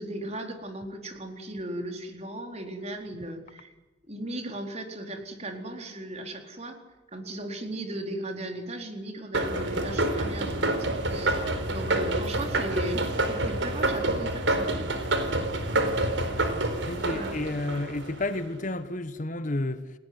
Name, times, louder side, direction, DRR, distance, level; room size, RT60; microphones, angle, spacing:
voice 1, 0.0-3.7 4.1-6.8 7.1-10.8 11.1-14.9 15.4-15.5 15.7-15.9 17.1-17.3, right 1 dB, 35° right, 4.1 m, -36 dB
sound 1, 9.3-18.4, right 2 dB, 75° right, 4.2 m, -28 dB
voice 2, 16.9-19.9, left 2 dB, 40° left, 1.3 m, -31 dB
29.5 x 18.5 x 9.6 m
head